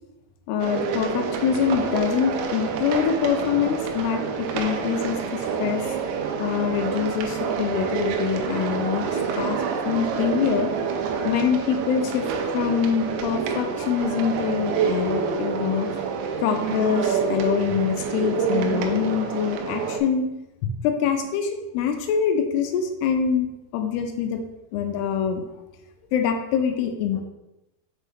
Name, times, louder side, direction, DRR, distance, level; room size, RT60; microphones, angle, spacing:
voice 1, 0.5-5.8 6.4-9.1 9.4-9.6 9.9-10.7 11.2-12.3 12.5-15.9 16.4-20.3 20.8-24.4 24.7-25.5 26.1-27.2, left 7 dB, 85° left, 5 dB, 2.5 m, -24 dB
sound 1, 0.6-20.0, right 6 dB, 85° right, 2.9 m, -27 dB
6.5 x 4.5 x 3.5 m, 0.93 s
omnidirectional pair, 5.0 m